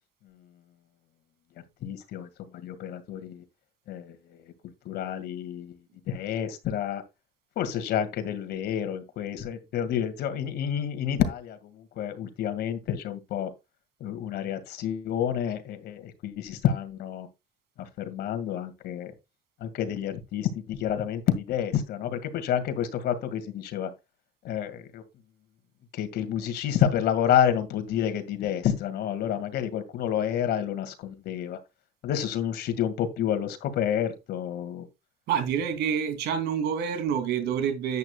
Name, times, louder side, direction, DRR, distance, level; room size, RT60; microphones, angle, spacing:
voice 1, 1.8-3.4 3.9-4.4 4.9-5.7 6.1-7.0 7.6-13.5 14.0-17.3 17.8-19.1 19.6-23.9 24.4-25.0 25.9-31.6 32.0-34.9, left 9 dB, 75° left, 2.0 m, -29 dB
voice 2, 35.3-38.0, right 8 dB, 80° right, 2.8 m, -27 dB
10.5 x 8.5 x 2.3 m
cardioid pair, 110°, 17 cm